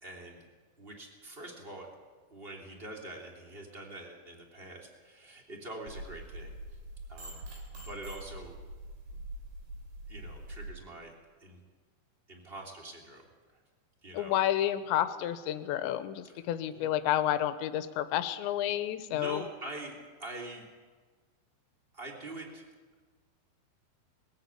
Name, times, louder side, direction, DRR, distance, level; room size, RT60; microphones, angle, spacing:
voice 1, 0.0-0.4 0.8-1.9 2.3-6.5 7.1-7.4 7.7-8.6 10.1-11.1 11.4-11.6 12.3-13.2 14.0-14.4 16.2-16.9 19.1-20.6 21.9-22.6, right 1 dB, 20° right, 0 dB, 1.9 m, -45 dB
sound 1, 5.9-10.7, right 1 dB, 55° right, 4.8 m, -44 dB
voice 2, 14.1-19.4, left 12 dB, 75° left, 11 dB, 2.9 m, -30 dB
21.0 x 15.0 x 8.4 m, 1.4 s
omnidirectional pair, 5.6 m